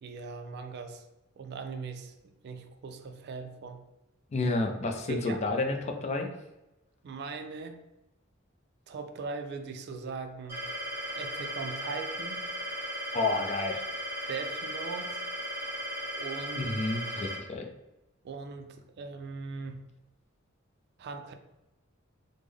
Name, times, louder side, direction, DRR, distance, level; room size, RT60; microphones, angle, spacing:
voice 1, 0.0-1.1 1.4-3.8 5.1-5.5 7.0-7.8 8.9-10.7 11.1-12.5 14.3-15.2 16.2-16.7 18.2-19.9 21.0-21.3, right 4 dB, 55° right, 7 dB, 0.3 m, -40 dB
voice 2, 4.3-6.3 13.1-13.8 16.6-17.7, left 2 dB, 35° left, 3 dB, 0.4 m, -30 dB
sound 1, 10.5-17.4, equal, 15° right, 1.0 m, -36 dB
3.5 x 2.0 x 3.4 m, 0.96 s
head